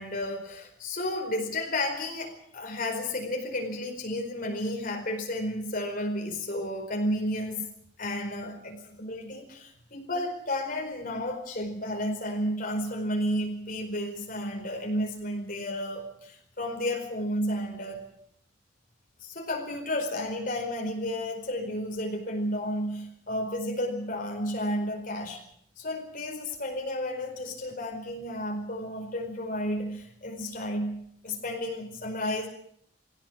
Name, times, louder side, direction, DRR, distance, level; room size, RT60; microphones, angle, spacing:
voice 1, 0.0-7.7 8.0-18.0 19.2-25.4 25.8-32.5, left 1 dB, 45° left, 2 dB, 4.7 m, -32 dB
23.5 x 17.5 x 7.6 m, 0.68 s
head